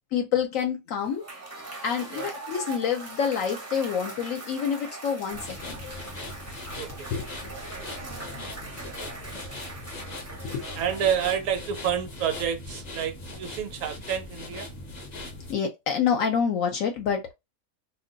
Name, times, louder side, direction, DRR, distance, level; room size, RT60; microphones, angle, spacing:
voice 1, 0.1-1.2 1.8-6.1 7.1-7.2 10.4-10.6 15.5-17.3, left 7 dB, 75° left, 1.0 m, -27 dB
Cheering / Applause / Crowd, 1.0-11.5, right 2 dB, 20° right, 0.4 m, -41 dB
sound 1, 5.3-15.5, left 2 dB, 40° left, 0.7 m, -40 dB
voice 2, 6.7-7.1 7.8-8.0 8.8-9.4 10.8-14.7, right 8 dB, 70° right, 1.0 m, -29 dB
2.6 x 2.2 x 3.8 m
omnidirectional pair, 1.4 m